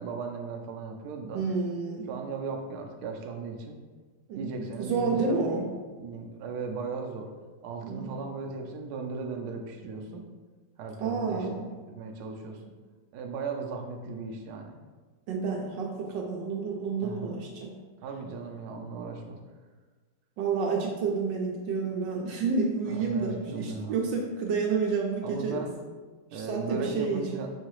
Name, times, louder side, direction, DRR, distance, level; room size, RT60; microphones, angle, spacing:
voice 1, 0.0-1.4 2.1-3.8 4.3-5.5 5.9-7.3 7.6-10.2 10.8-11.6 11.9-12.6 13.1-14.8 17.0-17.4 18.0-19.4 22.9-24.0 25.2-25.7 26.3-27.5, right 4 dB, 70° right, 2 dB, 1.0 m, -37 dB
voice 2, 1.3-2.2 4.3-5.7 7.8-8.2 11.0-11.7 15.3-17.7 20.4-25.6 26.3-27.5, right 4 dB, 85° right, -1 dB, 1.3 m, -30 dB
5.7 x 2.7 x 3.0 m, 1.4 s
omnidirectional pair, 1.9 m